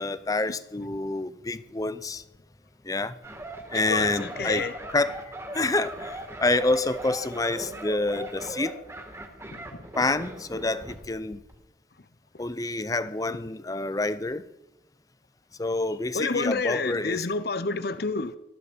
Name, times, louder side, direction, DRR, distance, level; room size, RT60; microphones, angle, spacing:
voice 1, 0.0-2.2 2.9-3.1 3.7-8.7 10.0-11.4 12.4-14.4 15.6-17.3, left 2 dB, 20° left, 0.6 m, -28 dB
sound 1, 3.2-11.1 11.3-11.6, right 1 dB, 15° right, 2.3 m, -39 dB
voice 2, 3.7-4.7 9.5-9.7 16.1-18.4, left 4 dB, 55° left, 0.8 m, -29 dB
19.0 x 14.0 x 5.2 m
head